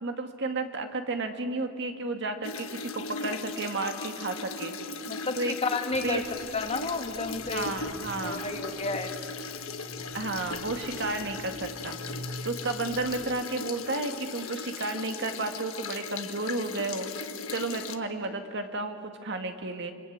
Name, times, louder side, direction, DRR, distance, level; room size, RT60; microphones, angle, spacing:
voice 1, 0.0-4.8 5.4-5.6 6.0-6.2 7.5-8.5 10.1-12.0 12.4-17.1 17.5-19.9, right 3 dB, 55° right, 6 dB, 2.0 m, -32 dB
sound 1, 2.4-18.0, left 4 dB, 70° left, 1.4 m, -38 dB
voice 2, 5.1-6.2 6.5-7.7 8.2-9.1, left 3 dB, 30° left, 5 dB, 1.8 m, -32 dB
sound 2, 5.9-13.4, equal, 30° right, 1.1 m, -45 dB
27.0 x 25.5 x 8.7 m, 2.3 s
head